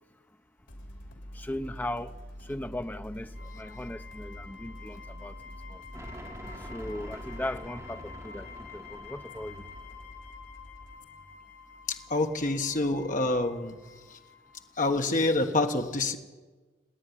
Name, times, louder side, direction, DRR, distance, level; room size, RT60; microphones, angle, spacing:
sound 1, 0.7-14.1, equal, 80° left, 3.4 m, -47 dB
voice 1, 1.3-2.1 2.4-5.4 5.7-5.8 6.7-9.7, left 1 dB, 10° left, 0.6 m, -38 dB
sound 2, 3.3-14.8, left 6 dB, 65° left, 6.8 m, -49 dB
sound 3, 5.9-10.3, right 1 dB, 15° right, 2.1 m, -46 dB
voice 2, 11.9-13.8 14.8-16.2, left 2 dB, 45° left, 1.4 m, -27 dB
28.5 x 9.8 x 9.9 m
head